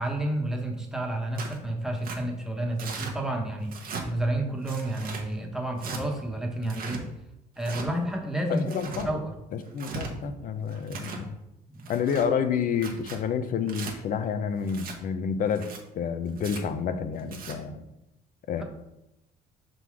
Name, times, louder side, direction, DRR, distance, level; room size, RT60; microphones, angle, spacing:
voice 1, 0.0-7.0 7.6-8.7 9.0-9.3 11.7-11.9 18.6-18.7, right 1 dB, 5° right, 0 dB, 1.2 m, -30 dB
Tearing, 1.4-1.6 2.0-2.2 2.8-3.1 3.7-4.1 4.6-5.2 5.8-6.0 6.6-7.0 7.6-7.9 8.5-9.1 9.7-10.1 10.7-11.2 11.8-12.3 12.7-13.2 13.7-13.9 14.7-15.0 15.5-15.8 16.4-16.6 17.2-17.5, right 5 dB, 60° right, 1.1 m, -38 dB
voice 2, 8.5-9.1 9.5-11.4 11.9-15.7 15.9-17.8 18.5-18.6, left 7 dB, 55° left, 10 dB, 0.6 m, -29 dB
5.9 x 3.8 x 4.7 m, 0.88 s
cardioid pair, 110°, 17 cm